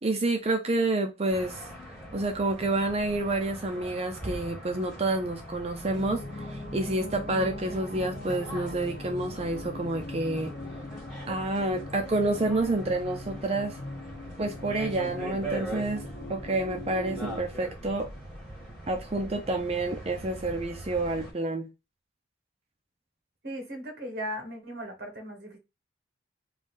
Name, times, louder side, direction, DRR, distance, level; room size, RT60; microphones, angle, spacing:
voice 1, 0.0-1.6 2.1-10.5 11.3-13.8 14.4-18.1 18.9-21.7, right 2 dB, 35° right, 0.5 m, -29 dB
sound 1, 1.3-21.3, right 1 dB, 5° right, 2.0 m, -42 dB
sound 2, 5.9-17.4, left 1 dB, 50° left, 1.0 m, -40 dB
voice 2, 23.4-25.6, equal, 55° right, 1.4 m, -37 dB
3.8 x 2.7 x 3.7 m
head